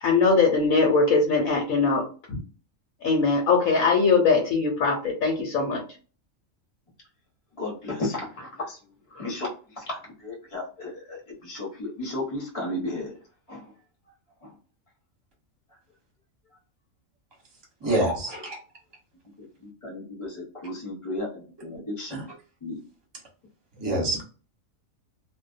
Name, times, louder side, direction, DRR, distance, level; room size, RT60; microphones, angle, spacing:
voice 1, 0.0-2.0 2.3-2.4 3.0-5.8, left 4 dB, 85° left, 0 dB, 1.1 m, -21 dB
voice 2, 7.6-8.8 9.1-9.5 9.8-13.1 13.5-13.7 17.8-18.1 19.6-22.2 22.6-22.8, left 2 dB, 25° left, -2 dB, 0.9 m, -34 dB
voice 3, 17.8-18.3 22.1-22.2 23.8-24.3, right 2 dB, 20° right, -1 dB, 0.8 m, -25 dB
2.4 x 2.1 x 2.4 m, 0.37 s
omnidirectional pair, 1.4 m